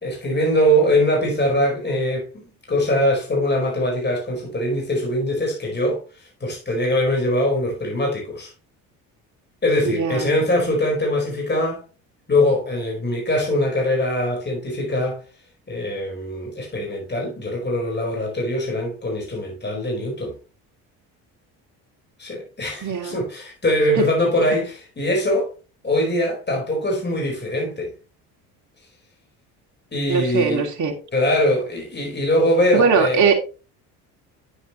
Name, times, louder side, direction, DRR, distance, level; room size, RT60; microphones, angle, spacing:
voice 1, 0.0-8.5 9.6-11.8 12.3-15.2 15.7-20.3 22.2-25.5 25.8-27.9 29.9-30.6 31.1-33.3, left 1 dB, 25° left, 4.8 m, -22 dB
voice 2, 9.8-10.3 22.8-23.2 24.0-24.1 30.1-30.9 32.7-33.3, right 5 dB, 45° right, 2.6 m, -20 dB
9.3 x 8.5 x 3.1 m
supercardioid pair, 65°, 40 cm